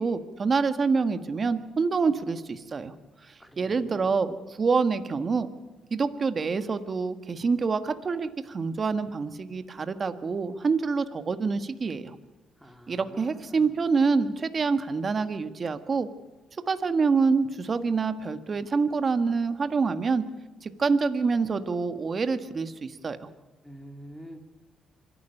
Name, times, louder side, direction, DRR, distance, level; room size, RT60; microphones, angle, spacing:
voice 1, 0.0-2.9 3.2-5.5 5.9-12.2 12.9-16.1 16.7-20.2 20.6-23.3, right 4 dB, 40° right, 10 dB, 1.5 m, -26 dB
voice 2, 3.4-4.1 12.6-13.7 23.6-24.4, equal, 5° left, 4 dB, 2.4 m, -46 dB
25.5 x 12.0 x 9.9 m, 1.2 s
cardioid pair, 90°, 0 cm